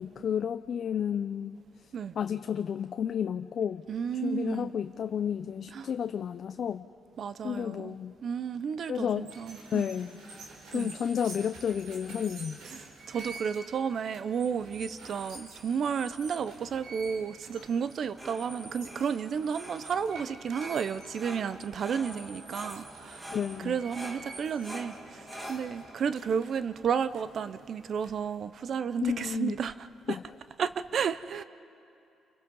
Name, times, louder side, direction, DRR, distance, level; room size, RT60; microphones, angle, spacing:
voice 1, 0.0-1.6 2.2-3.8 4.2-6.9 7.4-8.1 8.9-9.3 9.7-10.1 10.7-12.6 23.3-23.7 29.0-29.6 30.1-30.2, left 8 dB, 55° left, 10 dB, 0.5 m, -31 dB
voice 2, 3.9-4.7 5.7-5.9 7.2-9.9 10.7-10.9 12.7-23.3 23.6-30.2 30.6-31.4, right 7 dB, 55° right, 14 dB, 0.6 m, -32 dB
sound 1, 9.2-28.4, right 3 dB, 80° right, 3.7 m, -48 dB
sound 2, 17.8-27.6, equal, 15° right, 2.5 m, -46 dB
28.5 x 24.5 x 5.4 m, 2.7 s
cardioid pair, 90°, 0 cm